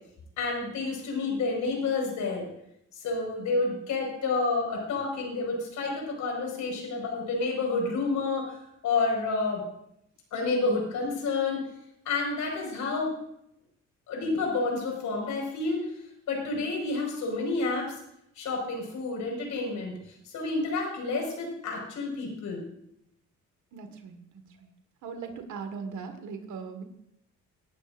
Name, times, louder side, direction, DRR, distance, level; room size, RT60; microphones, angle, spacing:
voice 1, 0.4-2.5 2.9-8.5 8.8-9.6 10.3-11.7 12.1-13.1 14.1-15.9 16.3-18.0 18.4-19.9 20.3-22.6, left 3 dB, 75° left, 0 dB, 5.4 m, -29 dB
voice 2, 23.7-24.7 25.0-26.8, right 5 dB, 75° right, 7 dB, 1.8 m, -39 dB
18.0 x 11.5 x 2.6 m, 0.77 s
cardioid pair, 90°, 30 cm